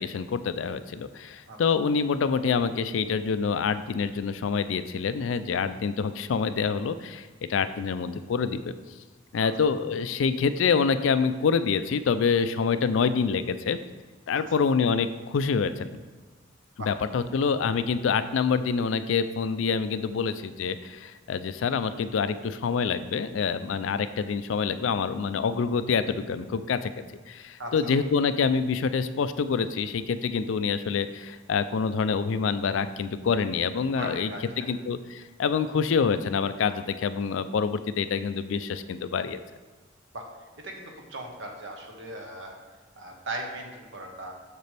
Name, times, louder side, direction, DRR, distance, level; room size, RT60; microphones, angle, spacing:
voice 1, 0.0-8.7 9.3-13.8 14.3-16.0 16.9-26.9 27.3-34.3 34.6-39.4, left 5 dB, 70° left, 12 dB, 0.4 m, -26 dB
voice 2, 14.3-14.7 16.8-16.9 27.6-27.9 33.9-34.7 40.1-42.6 42.9-44.3, right 1 dB, 70° right, 1 dB, 1.2 m, -39 dB
6.8 x 6.6 x 3.4 m, 1.3 s
head